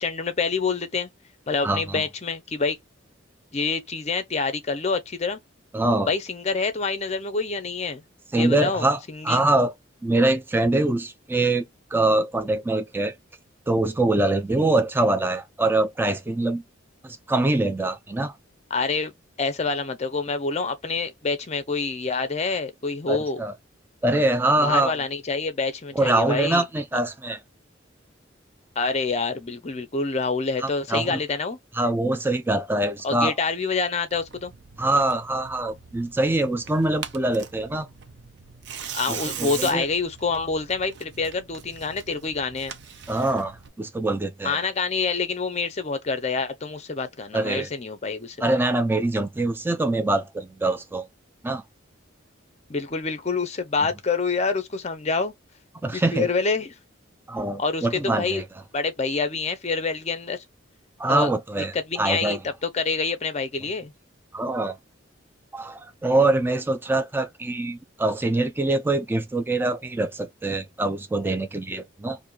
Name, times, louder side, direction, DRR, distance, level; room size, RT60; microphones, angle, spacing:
voice 1, 0.0-1.1 1.5-2.8 3.5-5.4 6.1-8.0 8.3-9.5 18.7-19.1 19.4-23.4 24.6-26.6 28.8-31.6 33.0-34.5 38.9-42.7 44.4-48.6 52.7-55.3 55.9-56.7 57.6-58.4 58.7-60.4 61.1-61.3 61.7-63.9, left 4 dB, 35° left, 0.6 m, -27 dB
voice 2, 1.6-2.0 5.7-6.1 8.3-9.0 9.2-9.7 10.0-11.6 11.9-13.1 13.7-16.6 17.0-18.3 23.1-23.5 24.0-24.9 26.0-27.4 30.6-31.2 31.8-33.3 34.8-37.9 39.1-39.8 43.1-44.6 47.3-47.7 48.4-51.1 51.4-51.6 55.8-56.3 57.3-58.4 61.0-62.4 64.3-64.8 65.5-72.2, right 2 dB, 10° right, 0.3 m, -24 dB
Tearing, 34.1-43.7, right 8 dB, 60° right, 0.6 m, -40 dB
4.2 x 2.6 x 2.3 m
head